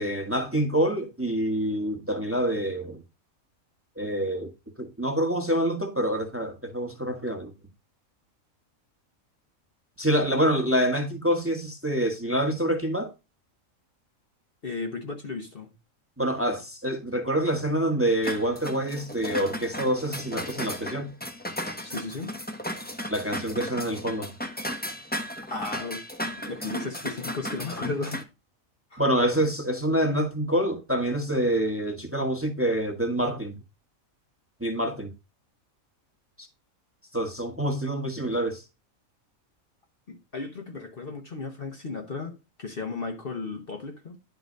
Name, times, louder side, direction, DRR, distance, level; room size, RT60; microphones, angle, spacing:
voice 1, 0.0-3.0 4.0-4.5 4.8-7.5 10.0-13.1 16.2-21.1 23.1-24.3 29.0-33.5 34.6-35.1 37.1-38.6, right 1 dB, 10° right, 1.3 m, -26 dB
voice 2, 14.6-15.7 21.8-22.4 25.4-26.0 26.5-28.2 28.9-29.0 40.1-44.2, left 3 dB, 45° left, 1.2 m, -35 dB
sound 1, 18.2-28.2, equal, 10° left, 0.9 m, -35 dB
10.5 x 3.9 x 5.1 m
omnidirectional pair, 1.5 m